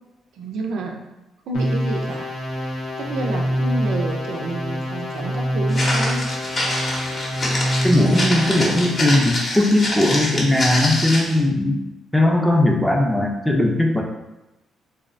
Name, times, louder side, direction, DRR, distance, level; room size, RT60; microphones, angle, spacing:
voice 1, 0.3-1.1 1.5-2.3 3.0-6.3, right 3 dB, 80° right, 2 dB, 0.3 m, -29 dB
sound 1, 1.5-9.1, equal, 80° left, 0.6 m, -25 dB
Walk footsteps, 5.7-11.4, left 1 dB, 40° left, 0.7 m, -25 dB
voice 2, 7.8-11.8 12.1-14.0, left 1 dB, 5° left, 1 dB, 0.4 m, -18 dB
2.6 x 2.0 x 2.5 m, 0.99 s
cardioid pair, 90°, 0 cm